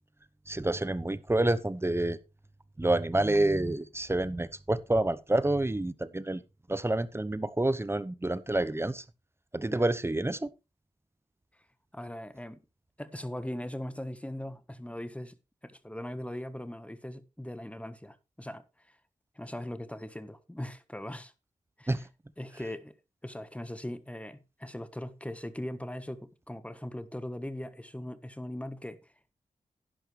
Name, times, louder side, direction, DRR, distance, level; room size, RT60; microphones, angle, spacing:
voice 1, 0.5-2.2 2.8-6.4 6.7-9.0 9.5-10.5 21.9-22.0, right 1 dB, 20° right, 1.0 m, -28 dB
voice 2, 11.9-12.6 13.0-15.4 15.6-18.6 19.3-21.3 21.8-22.0 22.4-23.0 23.2-29.0, left 1 dB, 10° left, 1.4 m, -40 dB
11.0 x 10.5 x 3.3 m
supercardioid pair, 40°, 13 cm